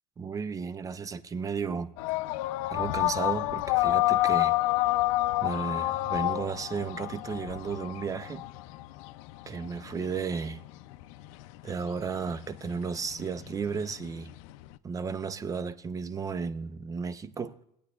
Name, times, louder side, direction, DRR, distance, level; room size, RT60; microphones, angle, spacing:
voice 1, 0.2-1.9 2.7-4.6 5.4-8.4 9.5-10.6 11.6-14.4 14.8-17.6, right 5 dB, 20° right, 0.4 m, -34 dB
sound 1, 2.0-14.8, left 18 dB, 90° left, 0.4 m, -29 dB
17.0 x 8.5 x 2.3 m
cardioid pair, 130°, 17 cm